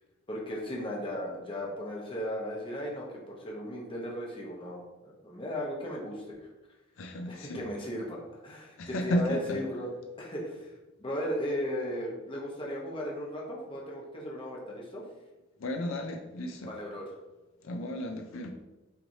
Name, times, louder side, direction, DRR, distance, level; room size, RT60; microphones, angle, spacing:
voice 1, 0.3-6.2 7.3-9.9 10.2-10.7 11.0-15.0 16.6-17.1, equal, 25° left, -3 dB, 0.9 m, -36 dB
voice 2, 7.0-7.6 8.8-9.6 15.6-16.7 17.6-18.5, left 1 dB, 75° left, 3 dB, 0.5 m, -33 dB
5.7 x 3.1 x 2.7 m, 1.1 s
head